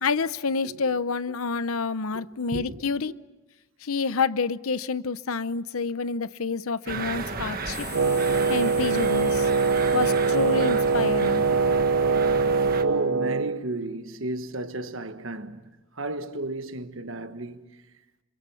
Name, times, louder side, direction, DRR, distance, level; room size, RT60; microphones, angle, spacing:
voice 1, 0.0-3.1 3.8-7.9 8.5-9.5 9.9-11.4, left 4 dB, 80° left, 0.8 m, -28 dB
voice 2, 0.6-1.0 2.1-2.9 12.8-17.8, right 1 dB, 65° right, 1.4 m, -34 dB
sound 1, 6.9-12.8, right 3 dB, 40° right, 1.6 m, -33 dB
sound 2, 7.7-11.6, left 4 dB, 10° left, 0.9 m, -44 dB
Wind instrument woodwind instrument, 7.9-13.6, right 4 dB, 85° right, 0.7 m, -23 dB
28.0 x 27.0 x 5.7 m
head